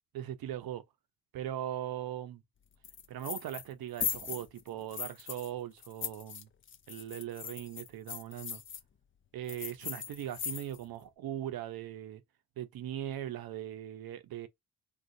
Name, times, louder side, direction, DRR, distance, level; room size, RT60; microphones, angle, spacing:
voice 1, 0.1-0.8 1.3-2.4 3.1-6.5 6.9-8.6 9.3-12.2 12.6-14.5, right 11 dB, 70° right, 0.6 m, -39 dB
sound 1, 2.8-3.7 4.0-5.5 5.8-8.8 9.5-10.9, left 8 dB, 35° left, 0.4 m, -39 dB
3.8 x 2.4 x 2.6 m
cardioid pair, 100°, 37 cm